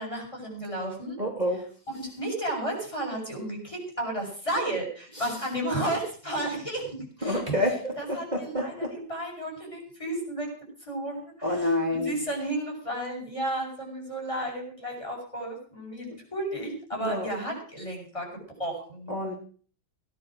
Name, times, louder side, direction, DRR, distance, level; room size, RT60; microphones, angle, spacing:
voice 1, 0.0-1.2 1.5-1.6 1.9-7.6 8.0-10.5 10.8-18.3 18.6-19.1, right 1 dB, 15° left, -1 dB, 7.2 m, -33 dB
voice 2, 1.2-1.6 7.2-8.9 11.4-12.2 16.9-17.3 19.1-19.3, left 1 dB, 25° right, 1 dB, 3.0 m, -28 dB
18.0 x 10.5 x 6.3 m, 0.44 s
omnidirectional pair, 1.9 m